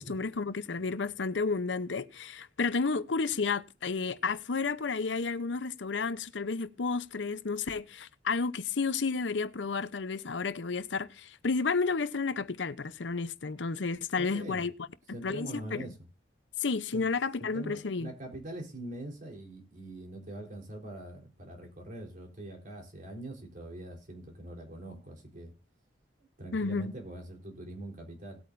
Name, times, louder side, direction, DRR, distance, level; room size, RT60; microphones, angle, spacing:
voice 1, 0.0-14.7 15.1-15.9 16.6-18.1 26.5-26.9, left 4 dB, 85° left, 0.7 m, -31 dB
voice 2, 14.1-14.6 15.1-16.0 16.9-17.1 17.4-25.5 26.4-28.4, right 1 dB, 50° right, 3.9 m, -43 dB
19.0 x 8.5 x 2.6 m
head